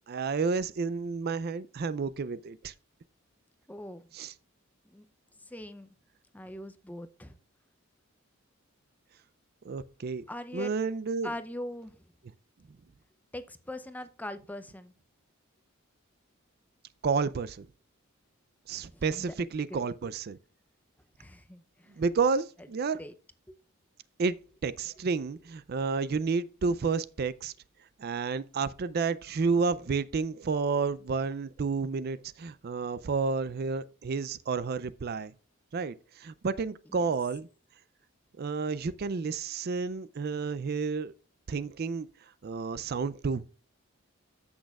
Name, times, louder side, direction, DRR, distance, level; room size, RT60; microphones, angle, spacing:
voice 1, 0.1-2.7 4.1-4.3 9.6-10.2 10.5-11.3 17.0-17.7 18.7-20.4 22.0-23.0 24.2-24.4 24.6-27.5 28.0-35.3 35.7-37.5 38.4-41.1 41.5-42.1 42.4-43.4, right 4 dB, 45° right, 0.4 m, -30 dB
voice 2, 3.7-4.1 4.8-5.0 5.4-5.9 6.3-7.4 10.3-10.7 11.2-12.1 13.3-14.9 18.7-19.3 19.7-19.9 21.2-22.0 23.0-23.1 23.5-23.6 36.9-37.1, left 1 dB, 10° left, 0.5 m, -42 dB
14.0 x 6.3 x 2.3 m
head